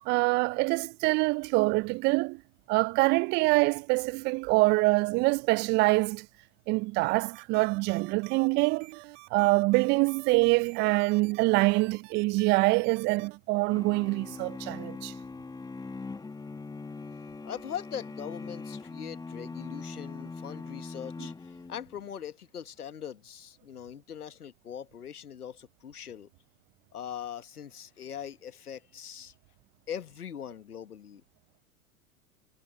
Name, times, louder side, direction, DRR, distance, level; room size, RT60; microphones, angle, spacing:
voice 1, 0.1-2.4 2.7-6.3 6.7-9.0 9.3-15.1, right 24 dB, 25° right, 0.4 m, -25 dB
sound 1, 7.3-13.4, right 21 dB, 55° right, 1.6 m, -51 dB
sound 2, 13.7-22.0, left 4 dB, 10° left, 1.5 m, -41 dB
voice 2, 17.4-26.3 26.9-29.3 29.9-31.2, left 8 dB, 80° left, 1.4 m, -41 dB
figure-of-eight pair, 95°, 44 cm